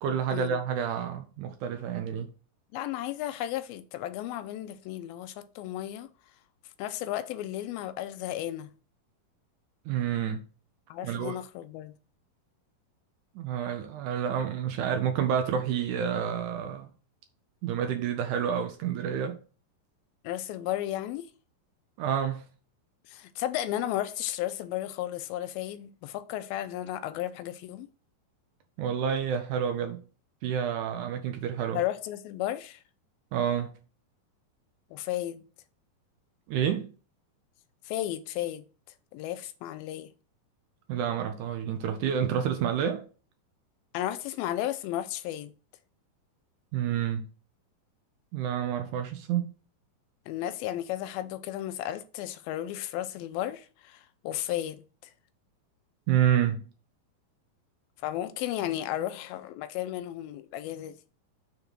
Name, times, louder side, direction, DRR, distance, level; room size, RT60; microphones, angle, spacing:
voice 1, 0.0-2.3 9.9-10.4 11.0-11.4 13.4-16.9 17.6-19.4 22.0-22.4 28.8-30.0 30.4-31.8 33.3-33.7 36.5-36.9 40.9-43.1 46.7-47.3 48.3-49.5 56.1-56.6, right 8 dB, 75° right, 2.0 m, -29 dB
voice 2, 2.7-6.1 6.8-8.7 10.9-11.9 20.2-21.3 23.1-27.9 31.7-32.8 34.9-35.5 37.9-38.7 39.1-40.1 43.9-45.5 50.3-54.8 58.0-61.0, left 13 dB, 85° left, 2.5 m, -34 dB
7.0 x 3.8 x 6.2 m
omnidirectional pair, 4.2 m